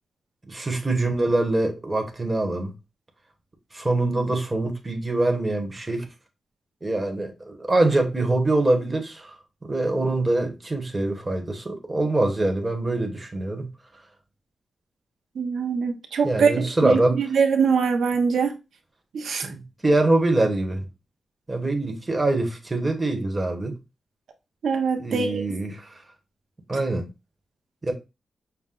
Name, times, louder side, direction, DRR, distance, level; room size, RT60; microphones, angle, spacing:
voice 1, 0.5-2.7 3.7-6.1 6.8-9.4 9.6-13.7 16.2-17.2 19.4-20.9 21.5-23.8 25.0-25.9 26.7-27.1 27.8-27.9, right 2 dB, 20° right, 1.0 m, -24 dB
voice 2, 15.4-18.6 19.1-19.5 24.6-25.4, right 5 dB, 90° right, 0.7 m, -23 dB
5.7 x 2.1 x 3.7 m
wide cardioid pair, 125°, 0 cm